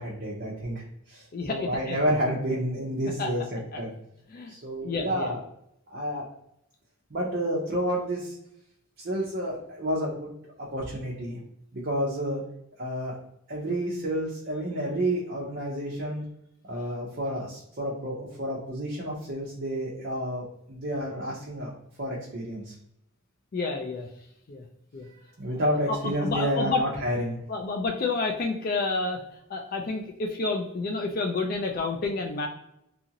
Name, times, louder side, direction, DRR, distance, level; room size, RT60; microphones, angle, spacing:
voice 1, 0.0-3.4 3.8-3.9 4.5-5.4 5.9-6.3 7.1-8.4 9.0-10.3 10.6-11.4 11.7-12.4 12.8-13.2 13.5-16.2 16.7-21.7 22.0-22.7 25.4-27.4, equal, 50° right, -4 dB, 0.6 m, -30 dB
voice 2, 1.3-2.1 3.2-3.3 3.7-3.8 4.3-4.5 4.8-5.3 23.5-24.1 24.5-24.6 24.9-25.1 25.9-26.8 27.5-29.2 29.5-32.5, left 3 dB, 45° left, 3 dB, 0.3 m, -29 dB
2.8 x 2.5 x 2.8 m, 0.77 s
head